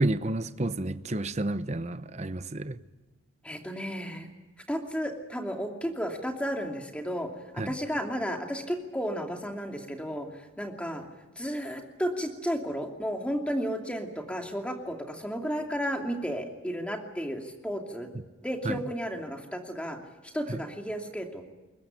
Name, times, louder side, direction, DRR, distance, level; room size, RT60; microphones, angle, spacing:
voice 1, 0.0-2.8 7.6-7.7 18.6-18.8 20.5-20.6, right 2 dB, 35° right, 0.8 m, -30 dB
voice 2, 3.4-4.3 4.7-11.0 11.4-18.1 18.4-20.0 20.3-21.4, equal, 5° left, 2.7 m, -33 dB
22.0 x 20.0 x 10.0 m
head